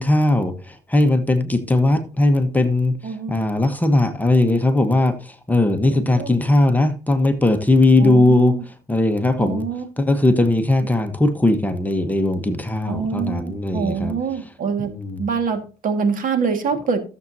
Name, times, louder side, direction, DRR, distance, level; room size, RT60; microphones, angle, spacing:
voice 1, 0.0-9.6 10.0-14.5 14.8-15.2, left 2 dB, 10° left, 7 dB, 1.1 m, -19 dB
voice 2, 3.0-3.4 5.9-6.3 8.0-8.6 9.4-9.8 12.9-14.9 15.2-17.0, right 5 dB, 55° right, 7 dB, 1.9 m, -25 dB
15.0 x 7.3 x 2.7 m, 0.34 s
cardioid pair, 110°, 17 cm